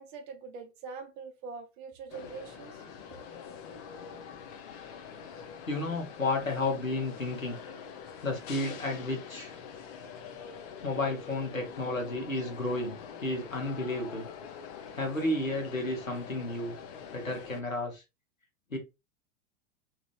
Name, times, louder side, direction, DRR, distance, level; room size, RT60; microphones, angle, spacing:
voice 1, 0.0-2.8, right 5 dB, 40° right, 0.7 m, -43 dB
sound 1, 2.1-17.6, left 7 dB, 30° left, 0.5 m, -45 dB
voice 2, 5.7-7.6 8.2-9.6 10.8-14.3 14.9-16.7 17.1-18.0 18.7-18.8, left 2 dB, 85° left, 1.1 m, -32 dB
2.9 x 2.4 x 3.0 m
figure-of-eight pair, 95°, 39 cm